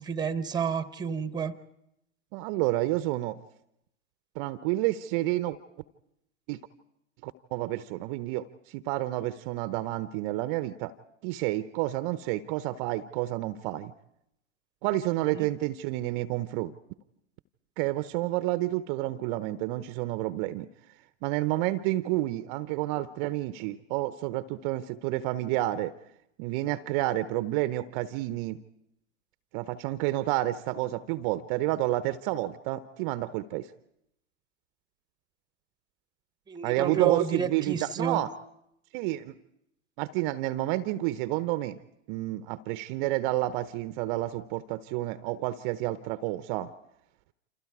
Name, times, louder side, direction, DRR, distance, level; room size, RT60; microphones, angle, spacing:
voice 1, 0.0-1.6 15.3-15.5 36.5-38.2, right 6 dB, 10° right, 13 dB, 1.1 m, -30 dB
voice 2, 2.3-3.4 4.4-5.6 6.5-6.6 7.2-10.9 11.2-13.9 14.8-16.7 17.8-20.7 21.2-25.9 26.4-28.6 29.5-33.7 36.6-38.3 38.9-39.3 40.0-41.8 42.1-46.7, right 16 dB, 40° right, 13 dB, 0.8 m, -30 dB
28.5 x 27.0 x 4.8 m, 0.80 s
figure-of-eight pair, 100°, 36 cm